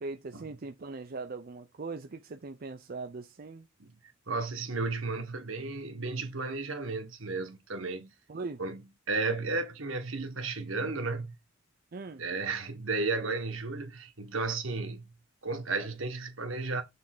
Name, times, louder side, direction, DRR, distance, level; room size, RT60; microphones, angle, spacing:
voice 1, 0.0-3.7 8.3-8.6 11.9-12.2, right 3 dB, 45° right, 0.5 m, -40 dB
voice 2, 4.3-8.1 8.6-8.8 9.1-11.3 12.2-15.1 15.4-16.8, right 3 dB, 75° right, 1.5 m, -33 dB
6.7 x 3.5 x 4.9 m
head